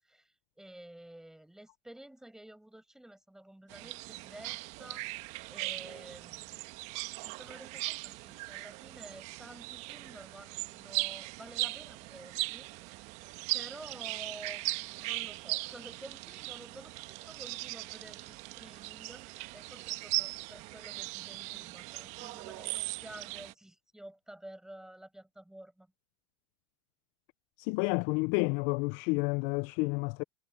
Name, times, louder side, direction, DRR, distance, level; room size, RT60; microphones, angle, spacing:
voice 1, 0.0-6.7 7.2-13.2 13.5-25.9, right 1 dB, 5° right, 7.6 m, -51 dB
sound 1, 3.7-23.5, right 22 dB, 55° right, 1.5 m, -39 dB
voice 2, 27.6-30.2, left 29 dB, 55° left, 0.6 m, -30 dB
hypercardioid pair, 95°, 14 cm